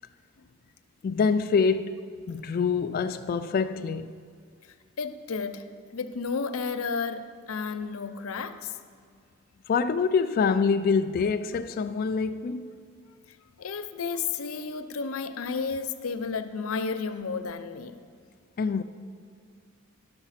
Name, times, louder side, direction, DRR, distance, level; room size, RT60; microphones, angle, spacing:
voice 1, 1.0-2.0 2.3-4.1 9.7-12.8 18.6-18.8, left 5 dB, 45° left, 0.3 m, -25 dB
voice 2, 5.0-5.6 5.9-8.7 13.6-18.0, left 5 dB, 85° left, 0.6 m, -32 dB
11.5 x 6.6 x 5.7 m
head